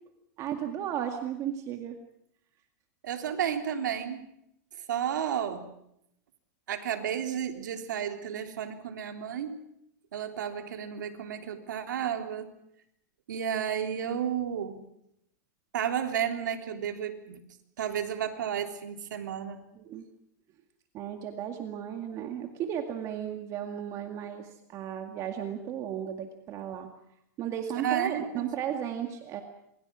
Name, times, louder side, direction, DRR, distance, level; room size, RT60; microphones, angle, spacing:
voice 1, 0.4-2.0 19.8-20.1 20.9-26.9 27.4-29.4, right 9 dB, 30° right, 5 dB, 2.1 m, -35 dB
voice 2, 3.0-4.2 4.9-5.7 6.7-9.6 10.1-12.5 13.3-14.8 15.7-17.4 17.8-19.6 27.8-28.5, right 9 dB, 85° right, 5 dB, 3.5 m, -32 dB
27.0 x 22.5 x 6.3 m, 0.77 s
supercardioid pair, 150°, 10 cm